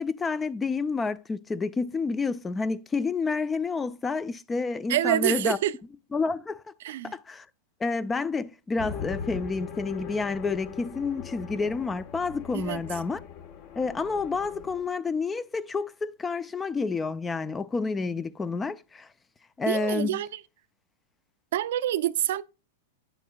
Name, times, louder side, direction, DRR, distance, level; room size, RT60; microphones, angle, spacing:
voice 1, 0.0-5.6 6.1-6.6 7.0-7.5 7.8-13.2 13.8-19.1 19.6-20.2, left 4 dB, 15° left, 0.4 m, -29 dB
voice 2, 4.9-5.7 6.8-7.1 12.5-12.8 19.7-20.4 21.5-22.4, right 13 dB, 70° right, 0.5 m, -27 dB
sound 1, 8.8-14.8, left 7 dB, 45° left, 1.2 m, -40 dB
9.4 x 7.8 x 2.3 m
hypercardioid pair, 130°, 0 cm